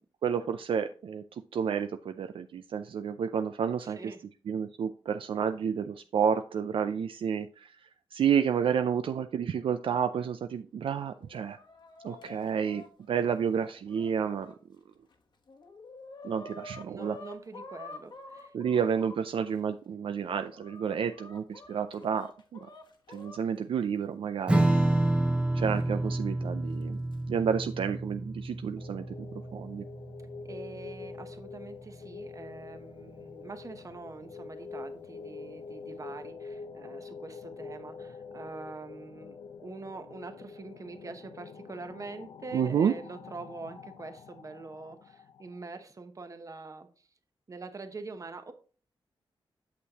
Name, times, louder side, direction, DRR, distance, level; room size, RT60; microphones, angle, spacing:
voice 1, 0.2-1.2 1.5-4.0 4.5-7.7 8.1-11.6 12.0-14.5 16.2-17.2 18.5-22.3 23.1-24.6 25.5-27.0 27.3-29.3 29.5-29.8 42.5-42.9, right 7 dB, 70° right, 9 dB, 0.4 m, -30 dB
voice 2, 3.8-4.2 16.8-18.5 30.4-39.4 39.6-47.1 47.5-48.5, right 3 dB, 35° right, 8 dB, 1.0 m, -44 dB
Chicken rooster, 11.1-14.6 15.1-15.2 15.5-19.5 20.1-23.4 24.6-24.7 25.7-25.8 26.8-27.2, left 3 dB, 55° left, 1.2 m, -49 dB
Strum, 24.5-31.3, right 1 dB, 10° right, 0.7 m, -29 dB
sound 1, 28.8-45.6, left 5 dB, 70° left, 0.5 m, -46 dB
8.3 x 6.4 x 2.9 m, 0.39 s
wide cardioid pair, 110°, 9 cm